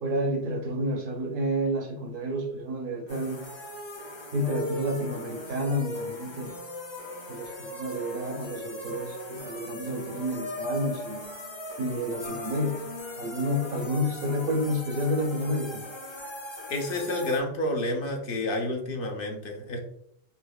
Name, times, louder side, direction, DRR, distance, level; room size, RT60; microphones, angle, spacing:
voice 1, 0.0-3.4 4.3-6.5 7.3-11.2 11.8-12.8 13.2-15.8, equal, 60° right, 3 dB, 0.7 m, -30 dB
sound 1, 3.1-17.4, left 1 dB, 35° left, 0.5 m, -39 dB
voice 2, 16.7-19.8, left 1 dB, 60° left, 2 dB, 0.8 m, -29 dB
4.1 x 2.7 x 2.2 m, 0.73 s
omnidirectional pair, 1.1 m